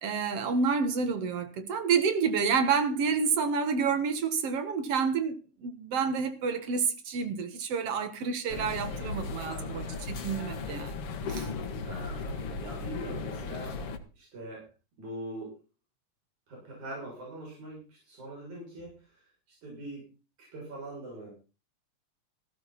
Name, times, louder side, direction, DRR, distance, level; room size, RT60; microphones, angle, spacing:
voice 1, 0.0-11.0 11.3-11.5, right 5 dB, 55° right, 2.5 m, -29 dB
sound 1, 8.5-14.0, left 4 dB, 55° left, 2.2 m, -36 dB
voice 2, 9.4-9.8 11.8-13.8 14.2-14.7 15.0-15.5 16.5-18.9 19.6-20.1 20.4-21.3, right 1 dB, 75° right, 8.6 m, -42 dB
16.0 x 13.0 x 4.2 m
omnidirectional pair, 3.4 m